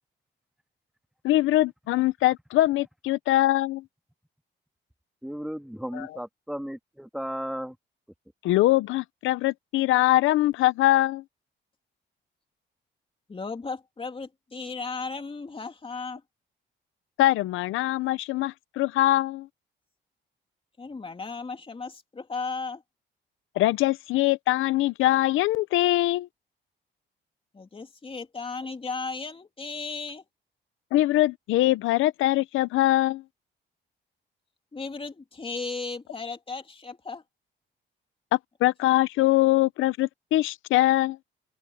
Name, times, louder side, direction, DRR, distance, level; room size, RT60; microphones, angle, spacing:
voice 1, 1.2-3.8 5.9-6.1 8.4-11.2 17.2-19.5 23.6-26.3 30.9-33.2 38.3-41.2, left 15 dB, 90° left, 0.7 m, -23 dB
voice 2, 5.2-7.8, equal, ahead, 2.8 m, -35 dB
voice 3, 13.3-16.2 20.8-22.8 27.5-30.2 34.7-37.2, left 4 dB, 25° left, 2.9 m, -35 dB
open air
cardioid pair, 90°, 20 cm